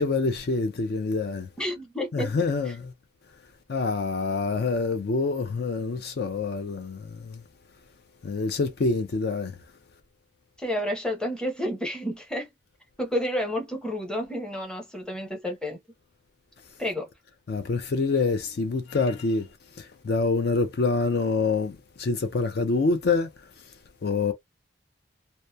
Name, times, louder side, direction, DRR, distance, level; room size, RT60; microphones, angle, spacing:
voice 1, 0.0-1.5 2.1-2.9 3.7-7.4 8.2-9.6 17.5-19.5 19.8-23.3 24.0-24.3, left 3 dB, 50° left, 0.4 m, -26 dB
voice 2, 1.6-2.4 10.6-12.5 13.0-15.8 16.8-17.1, equal, 5° left, 0.7 m, -30 dB
2.8 x 2.1 x 2.2 m
head